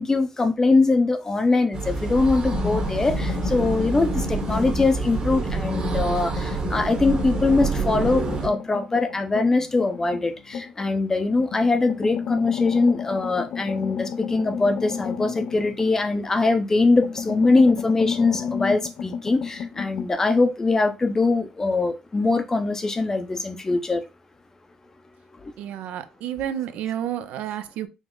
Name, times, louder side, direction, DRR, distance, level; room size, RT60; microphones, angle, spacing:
voice 1, 0.0-24.0 25.4-25.5, left 3 dB, 20° left, 0.6 m, -22 dB
sound 1, 1.7-8.5, right 4 dB, 40° right, 1.1 m, -27 dB
sound 2, 2.5-5.0 5.3-10.9 11.4-16.4 16.8-20.1, left 7 dB, 65° left, 0.5 m, -32 dB
voice 2, 25.6-27.9, right 10 dB, 75° right, 0.5 m, -30 dB
5.0 x 2.0 x 3.7 m
cardioid pair, 115°, 2 cm